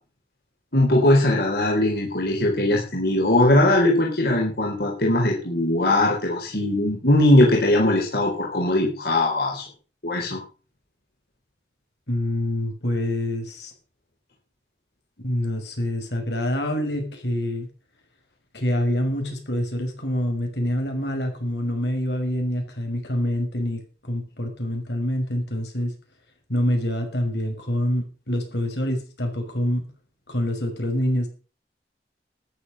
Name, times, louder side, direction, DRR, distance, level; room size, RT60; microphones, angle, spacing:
voice 1, 0.7-9.6 10.0-10.4, left 1 dB, 65° left, -2 dB, 4.1 m, -20 dB
voice 2, 12.1-13.7 15.2-17.7 18.5-23.8 24.1-25.9 26.5-29.9 30.3-31.3, left 1 dB, 85° left, 3 dB, 6.1 m, -26 dB
13.5 x 10.5 x 6.6 m, 0.37 s
head